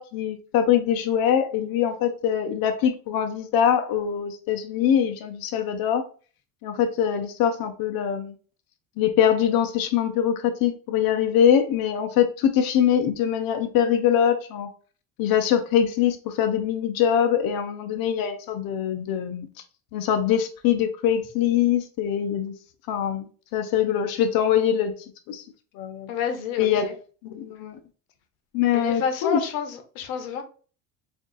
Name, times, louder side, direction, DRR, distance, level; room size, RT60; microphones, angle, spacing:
voice 1, 0.0-6.0 6.6-8.3 9.0-14.7 15.2-19.5 19.9-22.5 22.9-24.9 25.3-25.4 25.7-26.1 26.6-26.9 27.2-27.8 28.5-29.4, left 9 dB, 60° left, 0.7 m, -23 dB
voice 2, 26.1-26.9 28.7-30.4, left 6 dB, 90° left, 0.9 m, -29 dB
3.6 x 2.6 x 3.8 m
supercardioid pair, 95°, 39 cm